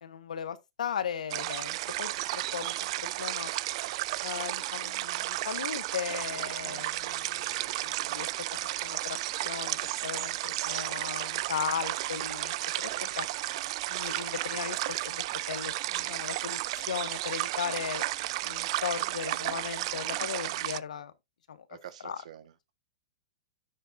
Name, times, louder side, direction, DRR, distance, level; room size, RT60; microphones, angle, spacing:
voice 1, 0.0-3.5 4.2-8.3 8.8-9.2 9.4-13.3 13.9-18.0 18.4-21.1 21.5-21.7 22.0-22.2, left 8 dB, 85° left, 1.4 m, -37 dB
sound 1, 1.3-20.8, right 17 dB, 50° right, 0.4 m, -33 dB
voice 2, 12.8-13.2 19.5-20.1 21.7-22.7, right 10 dB, 65° right, 1.6 m, -50 dB
10.0 x 7.1 x 2.7 m
hypercardioid pair, 145°, 4 cm